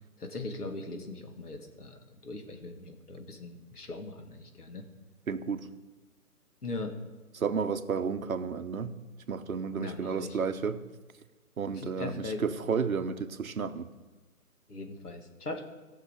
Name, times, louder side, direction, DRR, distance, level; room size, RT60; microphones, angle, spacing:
voice 1, 0.2-4.8 6.6-6.9 9.8-10.4 11.8-12.4 14.7-15.6, left 2 dB, 85° left, 4 dB, 2.0 m, -40 dB
voice 2, 5.3-5.7 7.3-8.9 9.3-10.8 11.6-13.9, right 5 dB, 65° right, 9 dB, 1.0 m, -32 dB
17.0 x 6.7 x 5.1 m, 1.2 s
figure-of-eight pair, 155°, 45 cm